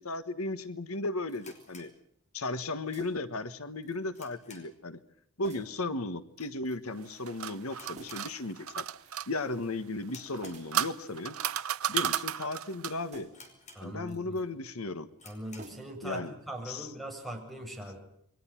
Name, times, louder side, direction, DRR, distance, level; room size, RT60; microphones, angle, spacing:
voice 1, 0.0-1.9 2.3-5.0 5.4-8.8 9.3-11.4 11.9-13.3 13.8-15.1 16.0-16.3 16.6-16.9, left 2 dB, 85° left, 12 dB, 1.4 m, -35 dB
sound 1, 1.3-1.7 2.9-3.4 3.8-4.3 4.6-4.7 5.4-5.8 6.4-6.9 7.9-8.4 8.7-9.3 10.4-10.8 11.4-12.1 13.1-13.5 14.0-14.5 15.6-16.1 16.4-16.5, right 2 dB, 35° right, 5.6 m, -52 dB
sound 2, 1.4-2.7 3.0-3.1 3.6-5.0 5.3-5.6 5.8-5.9 6.6-6.9 7.2-7.3 7.7-8.9 9.2-9.5 10.0-11.2 11.7-11.8 12.4-12.5 12.8-12.9 13.3-14.3 14.7-14.8 15.1-15.9, left 3 dB, 35° left, 5.3 m, -54 dB
sound 3, 7.0-9.3 10.3-13.1, right 10 dB, 80° right, 0.9 m, -34 dB
voice 2, 13.7-14.4 15.2-18.0, right 1 dB, ahead, 4 dB, 7.2 m, -41 dB
28.5 x 23.5 x 6.0 m, 0.70 s
head